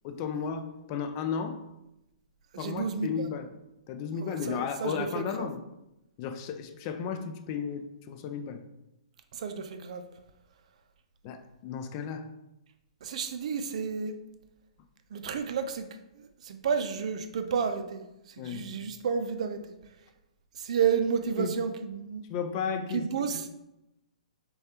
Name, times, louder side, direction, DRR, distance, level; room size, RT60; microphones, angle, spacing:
voice 1, 0.0-1.6 2.6-3.4 3.9-5.6 6.2-8.6 11.2-12.3 18.4-18.7 21.4-21.5 22.3-23.4, left 6 dB, 40° left, 7 dB, 0.4 m, -34 dB
voice 2, 2.5-3.3 4.2-5.5 9.3-10.0 13.0-14.2 15.1-15.9 16.2-19.7 20.6-22.2 22.9-23.5, right 6 dB, 60° right, 7 dB, 0.5 m, -31 dB
6.3 x 2.3 x 2.8 m, 0.91 s
hypercardioid pair, 130°, 4 cm